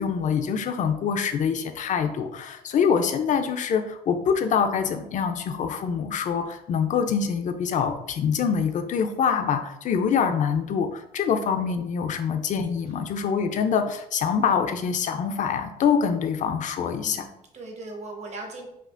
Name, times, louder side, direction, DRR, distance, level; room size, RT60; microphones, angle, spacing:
voice 1, 0.0-17.3, left 6 dB, 50° left, 7 dB, 0.5 m, -25 dB
voice 2, 16.8-18.7, right 2 dB, 40° right, 2 dB, 1.0 m, -39 dB
5.6 x 2.4 x 2.5 m, 0.82 s
cardioid pair, 110°, 17 cm